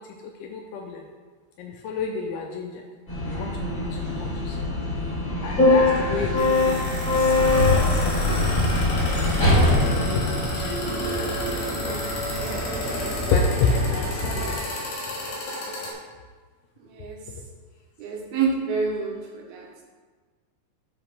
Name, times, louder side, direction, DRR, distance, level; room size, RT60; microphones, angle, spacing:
voice 1, 0.4-1.0 1.6-2.8 3.3-4.6 5.4-8.5 9.1-9.3 9.8-10.9 11.2-11.6 11.9-12.0 13.3-14.7, left 4 dB, 80° left, 2 dB, 2.3 m, -30 dB
sound 1, 3.1-10.8, left 2 dB, 25° left, 2.2 m, -22 dB
sound 2, 5.9-15.9, left 1 dB, 55° left, 3.2 m, -33 dB
sound 3, 8.2-14.6, right 1 dB, 30° right, 1.2 m, -30 dB
voice 2, 18.0-19.1 19.5-19.6, right 5 dB, 75° right, -1 dB, 2.6 m, -26 dB
11.5 x 5.1 x 3.5 m, 1.4 s
omnidirectional pair, 4.9 m